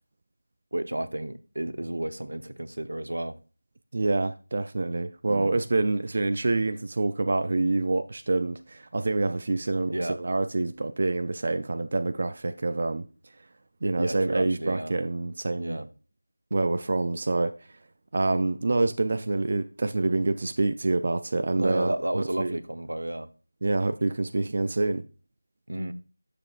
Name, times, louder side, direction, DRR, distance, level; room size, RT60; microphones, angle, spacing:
voice 1, 0.7-3.4 5.3-5.6 9.9-10.2 14.0-15.0 15.6-15.9 21.6-23.3 25.7-25.9, right 1 dB, 85° right, 0.8 m, -32 dB
voice 2, 3.9-13.0 13.8-15.8 16.5-17.5 18.1-22.6 23.6-25.0, right 2 dB, 40° right, 0.4 m, -26 dB
10.5 x 6.8 x 2.4 m
figure-of-eight pair, 175°, 0 cm